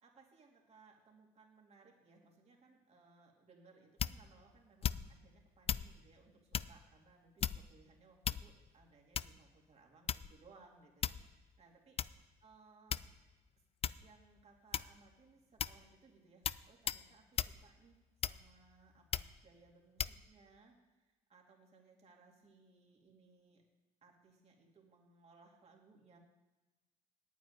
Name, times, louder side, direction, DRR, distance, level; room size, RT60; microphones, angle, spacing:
voice 1, 0.0-13.0 14.0-23.6 24.0-26.2, right 4 dB, 40° right, 0 dB, 3.0 m, -65 dB
sound 1, 4.0-4.3 4.8-5.2 5.7-5.9 6.5-6.8 7.4-7.8 8.2-8.7 9.1-9.5 10.1-10.4 11.0-11.3 12.0-12.1 12.9-13.3 13.8-14.1 14.7-15.1 15.6-15.8 16.4-16.6 16.9-17.0 17.4-17.6 18.2-18.6 19.1-19.4 20.0-20.2, left 9 dB, 35° left, 0.4 m, -37 dB
9.3 x 8.8 x 9.4 m, 1.2 s
cardioid pair, 110°, 17 cm